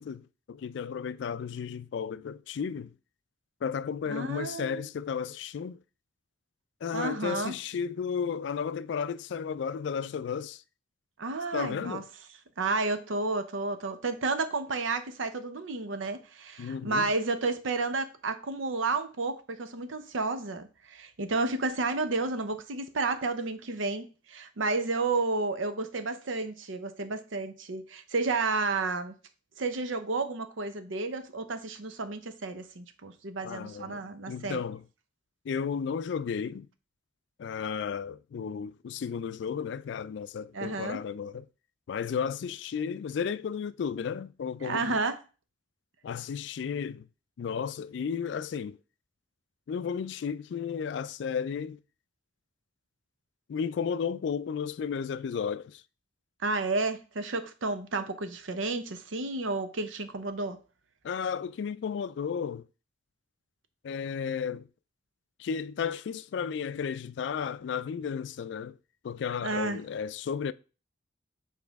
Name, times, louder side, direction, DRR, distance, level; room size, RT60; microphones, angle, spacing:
voice 1, 0.0-2.9 3.6-5.8 6.8-10.6 11.5-12.1 16.6-17.1 33.4-34.0 34.3-34.8 35.4-36.7 37.4-41.4 41.9-45.0 46.0-47.1 47.4-48.8 49.7-51.8 53.5-55.8 61.0-62.7 63.8-64.7 65.4-68.8 69.0-70.5, left 6 dB, 65° left, 0.3 m, -33 dB
voice 2, 4.1-4.9 6.9-7.5 11.2-12.0 12.6-29.1 29.6-34.6 40.5-41.0 44.6-45.2 56.4-60.6 69.4-69.8, right 3 dB, 85° right, 0.7 m, -31 dB
7.2 x 4.2 x 3.4 m
head